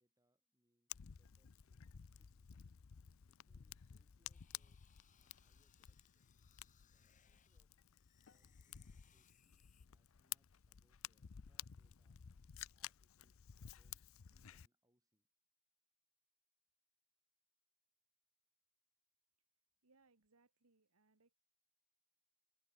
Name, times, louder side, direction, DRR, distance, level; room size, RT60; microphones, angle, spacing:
voice 1, 0.0-1.8 2.1-2.7 3.3-6.4 6.8-7.8 8.3-12.2 12.7-15.3, right 1 dB, 15° right, 5.4 m, -84 dB
Fire, 0.9-14.7, left 11 dB, 65° left, 0.5 m, -54 dB
sound 1, 4.3-7.6 7.9-9.9, left 9 dB, 35° left, 5.2 m, -74 dB
voice 2, 19.8-21.3, right 3 dB, 80° right, 1.6 m, -74 dB
head